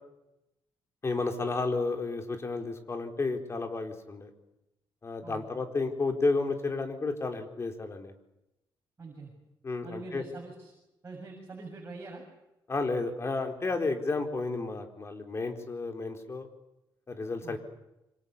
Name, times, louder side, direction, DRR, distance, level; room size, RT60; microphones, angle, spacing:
voice 1, 1.0-4.3 5.0-8.1 9.6-10.2 12.7-16.5 17.1-17.6, left 3 dB, 30° left, 5 dB, 4.3 m, -32 dB
voice 2, 9.0-9.3 9.8-10.7 11.0-12.2 17.4-17.6, right 3 dB, 30° right, 0 dB, 7.5 m, -44 dB
27.5 x 25.5 x 7.2 m, 0.93 s
cardioid pair, 125°, 9 cm